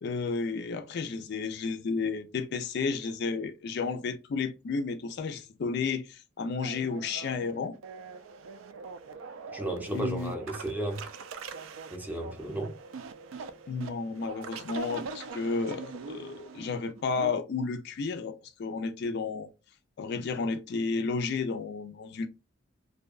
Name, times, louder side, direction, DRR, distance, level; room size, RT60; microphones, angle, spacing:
voice 1, 0.0-7.8 9.9-10.3 13.7-19.5 20.0-22.3, left 4 dB, 55° left, 0.4 m, -32 dB
sound 1, 6.6-17.4, right 4 dB, 75° right, 0.3 m, -43 dB
voice 2, 9.5-11.0 11.9-12.8, right 1 dB, 10° right, 0.5 m, -34 dB
2.6 x 2.2 x 2.3 m
head